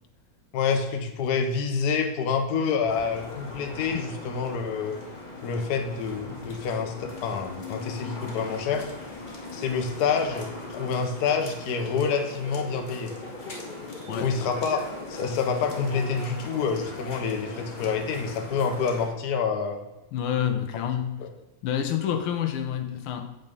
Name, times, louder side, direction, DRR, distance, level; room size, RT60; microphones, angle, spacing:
voice 1, 0.5-5.0 5.4-8.9 9.5-13.1 14.2-14.8 15.1-19.8 21.2-21.3, left 5 dB, 55° left, 1.3 m, -27 dB
sound 1, 2.9-19.1, left 2 dB, 25° left, 1.3 m, -39 dB
voice 2, 20.1-21.2 21.6-23.4, left 9 dB, 85° left, 1.7 m, -28 dB
7.8 x 5.7 x 5.3 m
omnidirectional pair, 2.3 m